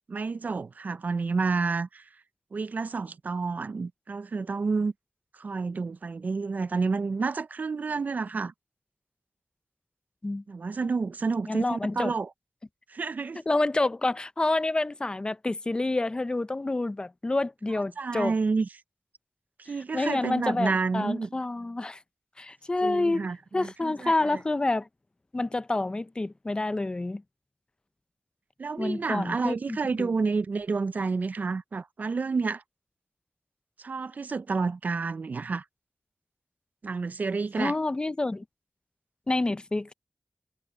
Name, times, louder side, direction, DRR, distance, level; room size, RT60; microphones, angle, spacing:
voice 1, 0.1-2.1 2.5-4.9 5.3-8.5 10.5-12.3 12.9-13.4 18.0-18.7 19.6-21.3 22.8-24.4 28.6-32.6 33.8-35.6 36.8-37.7, right 4 dB, 70° right, 0.4 m, -29 dB
voice 2, 11.5-12.1 13.5-18.3 19.7-22.0 22.4-23.3 23.5-24.9 25.3-27.2 28.8-30.1 37.6-38.4 39.3-39.9, left 2 dB, 30° left, 0.5 m, -28 dB
wide cardioid pair, 90°, 3 cm